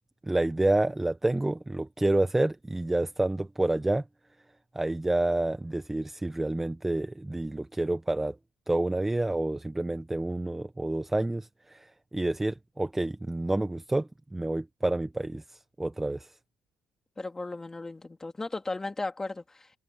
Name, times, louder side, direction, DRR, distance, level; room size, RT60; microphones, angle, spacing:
voice 1, 0.3-4.0 4.7-8.4 8.7-16.3, right 2 dB, 10° right, 0.9 m, -29 dB
voice 2, 17.2-19.7, left 2 dB, 15° left, 2.6 m, -36 dB
cardioid pair, 140°, 4 cm